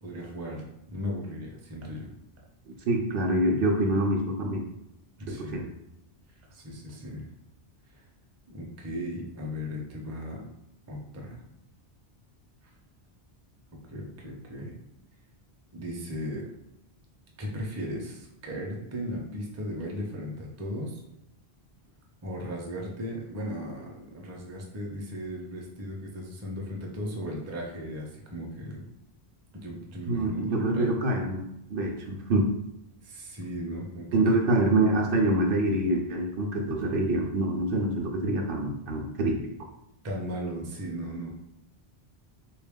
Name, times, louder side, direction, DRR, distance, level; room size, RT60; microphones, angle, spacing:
voice 1, 0.0-2.1 5.2-5.7 6.5-7.3 8.5-10.5 10.9-11.4 13.9-14.8 15.7-16.5 17.4-21.0 22.2-28.8 29.5-30.9 33.0-34.4 40.0-41.3, equal, 20° right, -1 dB, 0.4 m, -36 dB
voice 2, 2.7-4.7 5.3-5.7 30.1-31.4 31.7-32.5 34.1-39.4, right 1 dB, 65° right, 1 dB, 0.7 m, -26 dB
3.5 x 2.3 x 3.5 m, 0.82 s
omnidirectional pair, 1.1 m